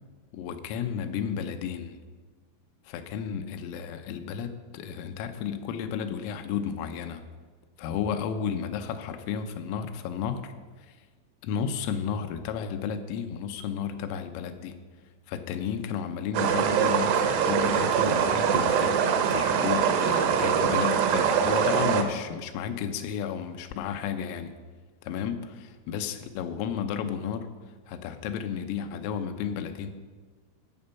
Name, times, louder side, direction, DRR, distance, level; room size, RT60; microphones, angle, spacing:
voice 1, 0.3-2.0 2.9-7.3 7.8-10.5 10.8-11.0 11.4-14.8 15.3-19.0 19.3-24.5 25.0-27.5 27.9-29.9, left 7 dB, 90° left, 8 dB, 3.4 m, -33 dB
sound 1, 16.3-22.0, right 7 dB, 75° right, 2.6 m, -23 dB
15.0 x 7.1 x 5.6 m, 1.4 s
omnidirectional pair, 5.8 m